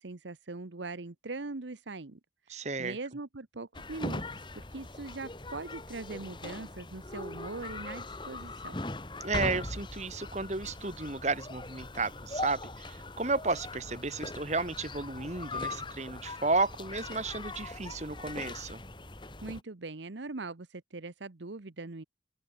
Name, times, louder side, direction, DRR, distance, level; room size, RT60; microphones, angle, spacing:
voice 1, 0.0-2.2 2.5-4.4 4.7-8.8 19.4-22.0, right 3 dB, 85° right, 1.1 m, -41 dB
voice 2, 2.5-3.0 9.2-18.8, right 3 dB, 40° right, 1.6 m, -33 dB
sound 1, 3.7-19.6, left 2 dB, 25° left, 1.8 m, -40 dB
open air
head